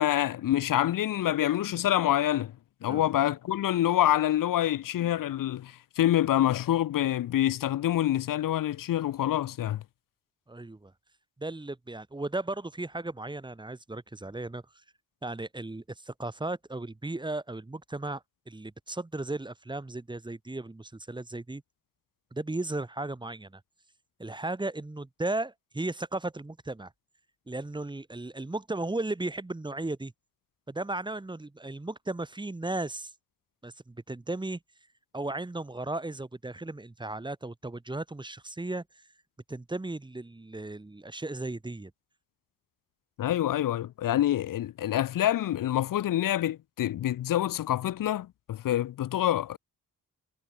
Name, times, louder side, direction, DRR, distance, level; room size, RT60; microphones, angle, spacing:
voice 1, 0.0-2.5 2.8-9.8 43.2-49.6, left 12 dB, 75° left, 1.0 m, -26 dB
voice 2, 10.5-10.9 11.4-14.6 15.2-21.6 22.3-23.6 24.2-26.9 27.5-30.1 30.7-33.1 33.6-34.6 35.1-39.0 39.5-41.9, right 2 dB, 15° right, 1.6 m, -35 dB
cardioid pair, 100°, 33 cm